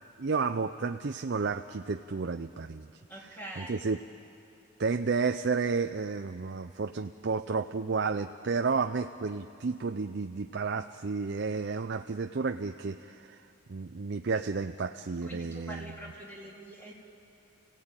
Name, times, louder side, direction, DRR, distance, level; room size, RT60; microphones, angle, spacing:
voice 1, 0.2-2.9 3.2-4.0 4.8-13.4 13.7-15.8, right 4 dB, 50° right, 7 dB, 0.5 m, -31 dB
voice 2, 3.1-3.8 15.2-16.9, right 1 dB, 10° left, -3 dB, 2.8 m, -44 dB
28.5 x 17.5 x 8.9 m, 2.8 s
head